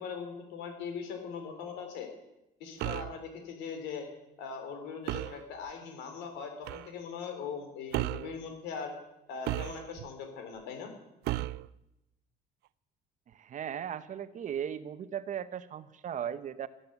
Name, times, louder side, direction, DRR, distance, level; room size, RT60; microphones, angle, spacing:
voice 1, 0.0-2.1 2.6-4.1 4.4-8.9 9.3-10.9, left 6 dB, 85° left, 5 dB, 3.8 m, -40 dB
sound 1, 2.8-3.2 5.1-5.4 6.7-6.9 7.9-8.3 9.5-10.1 11.3-11.7, right 17 dB, 80° right, 0.4 m, -34 dB
voice 2, 13.3-16.7, right 9 dB, 50° right, 14 dB, 0.9 m, -37 dB
12.5 x 10.5 x 8.2 m, 0.92 s
cardioid pair, 110°, 17 cm